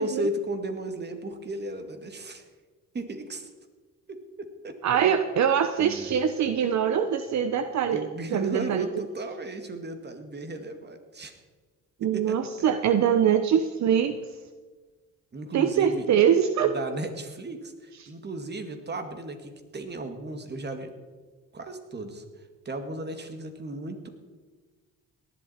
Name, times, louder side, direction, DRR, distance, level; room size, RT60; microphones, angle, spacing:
voice 1, 0.0-2.4 2.9-3.5 4.1-4.8 5.8-6.2 7.9-11.4 12.0-12.7 15.3-16.1 16.6-20.9 21.5-22.2 22.7-24.1, right 2 dB, 35° right, 7 dB, 2.0 m, -35 dB
voice 2, 4.8-8.9 12.0-14.2 15.5-16.8 18.0-18.1, right 8 dB, 65° right, 9 dB, 0.9 m, -23 dB
18.0 x 11.5 x 4.3 m, 1.4 s
cardioid pair, 90°, 30 cm